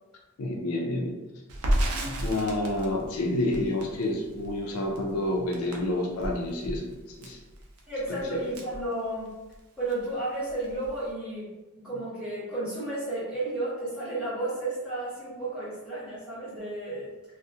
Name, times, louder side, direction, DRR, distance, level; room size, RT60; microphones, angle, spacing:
voice 1, 0.4-1.1 2.2-6.9 7.2-7.4 8.1-8.4, left 1 dB, 80° left, 1 dB, 0.4 m, -29 dB
Crackle, 1.5-9.6 9.9-10.0 10.3-11.1, right 1 dB, 80° right, 0.5 m, -33 dB
voice 2, 7.9-9.3 9.8-11.5 11.8-17.1, right 2 dB, 5° right, -11 dB, 1.0 m, -32 dB
2.4 x 2.0 x 2.7 m, 1.1 s
head